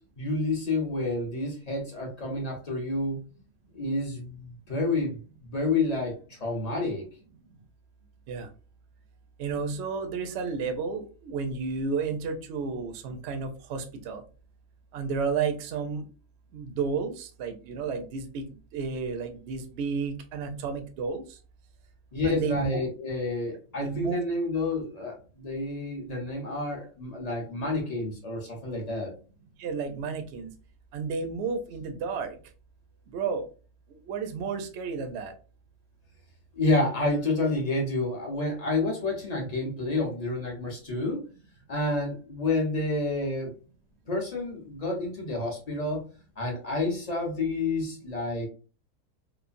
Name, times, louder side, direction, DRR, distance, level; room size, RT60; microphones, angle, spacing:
voice 1, 0.2-3.2 3.7-5.2 5.5-7.1 22.1-29.1 36.5-41.2 41.7-43.6 44.1-46.0 46.4-48.5, left 2 dB, 40° left, -1 dB, 0.6 m, -29 dB
voice 2, 9.4-14.2 14.9-16.0 16.5-18.4 18.7-21.2 22.2-22.8 23.8-24.3 29.6-30.5 30.9-32.4 33.1-33.4 34.1-35.3, right 5 dB, 65° right, 7 dB, 0.7 m, -32 dB
3.1 x 2.0 x 2.5 m, 0.35 s
omnidirectional pair, 1.5 m